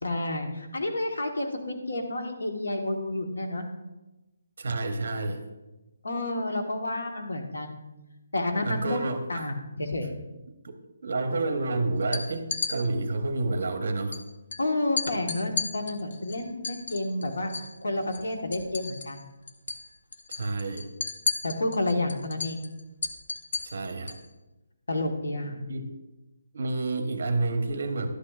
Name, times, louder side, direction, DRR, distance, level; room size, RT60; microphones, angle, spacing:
voice 1, 0.0-3.7 6.0-7.9 8.3-9.0 9.3-10.1 14.6-17.5 17.8-19.3 21.4-22.6 24.9-25.6, left 2 dB, 90° left, 3 dB, 1.4 m, -30 dB
voice 2, 4.6-5.4 8.6-9.5 10.5-10.8 11.0-14.2 20.3-20.9 23.6-24.2 25.6-25.8 26.5-28.1, right 2 dB, 45° right, 7 dB, 0.9 m, -29 dB
sound 1, 12.0-12.7 14.1-14.2 14.5-14.6 15.0-17.7 18.0-19.2 19.5-19.8 20.1-24.3, left 4 dB, 45° left, 0.7 m, -33 dB
11.5 x 8.4 x 2.5 m, 1.1 s
hypercardioid pair, 180°, 0 cm